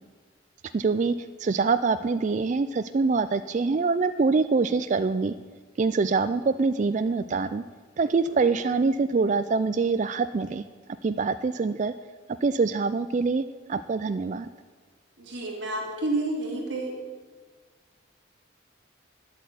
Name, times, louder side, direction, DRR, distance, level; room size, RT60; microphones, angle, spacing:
voice 1, 0.7-1.1 1.4-5.3 5.8-7.6 8.0-10.6 11.0-11.9 12.4-13.4 13.7-14.5, right 4 dB, 40° right, 11 dB, 0.3 m, -24 dB
voice 2, 15.2-16.9, right 2 dB, 70° right, -2 dB, 3.5 m, -30 dB
10.0 x 8.1 x 9.3 m, 1.5 s
head